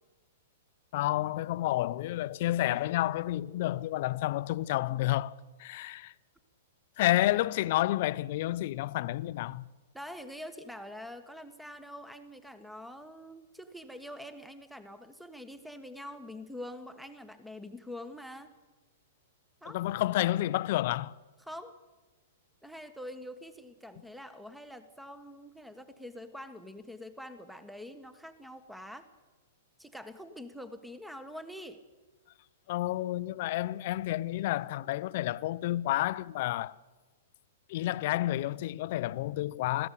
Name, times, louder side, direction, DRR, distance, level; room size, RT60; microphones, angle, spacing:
voice 1, 0.9-6.1 7.0-9.7 19.7-21.1 32.7-36.7 37.7-39.9, left 15 dB, 55° left, 0.6 m, -30 dB
voice 2, 9.9-18.5 19.6-19.8 21.4-21.8 22.6-29.0 29.8-31.8, left 1 dB, ahead, 1.5 m, -45 dB
21.0 x 15.0 x 8.5 m
hypercardioid pair, 115°, 0 cm